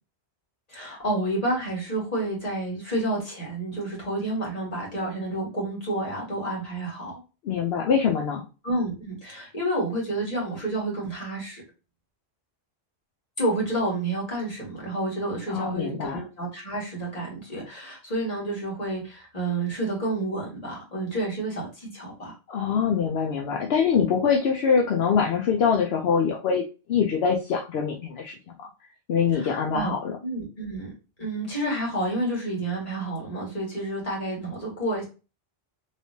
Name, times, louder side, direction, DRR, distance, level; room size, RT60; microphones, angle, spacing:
voice 1, 0.7-7.2 8.6-11.6 13.4-22.4 29.3-29.9 30.2-30.9 31.2-35.0, right 1 dB, 35° left, -4 dB, 1.8 m, -29 dB
voice 2, 7.4-8.4 15.5-16.2 22.5-26.6 26.9-28.7 29.1-30.1, left 6 dB, 75° left, 0 dB, 0.8 m, -24 dB
3.3 x 3.2 x 2.7 m, 0.32 s
omnidirectional pair, 1.1 m